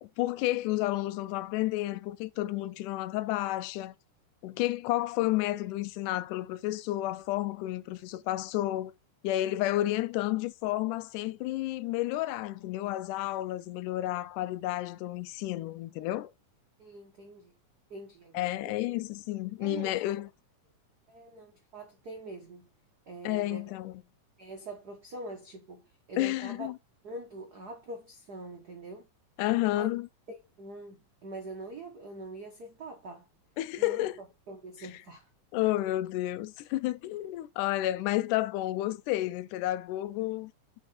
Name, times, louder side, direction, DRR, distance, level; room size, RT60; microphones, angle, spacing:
voice 1, 0.0-3.9 4.4-8.9 9.2-16.3 18.3-20.3 23.3-23.9 26.2-26.8 29.4-30.1 33.6-34.2 34.8-34.9 35.5-40.5, left 16 dB, 85° left, 2.1 m, -31 dB
voice 2, 16.8-17.5 17.9-18.8 19.6-20.0 21.1-22.7 23.1-23.7 24.4-25.8 26.1-26.7 27.0-29.0 29.7-29.9 30.3-33.3 33.8-35.3, right 2 dB, 75° right, 0.9 m, -44 dB
6.6 x 4.8 x 4.3 m
omnidirectional pair, 3.5 m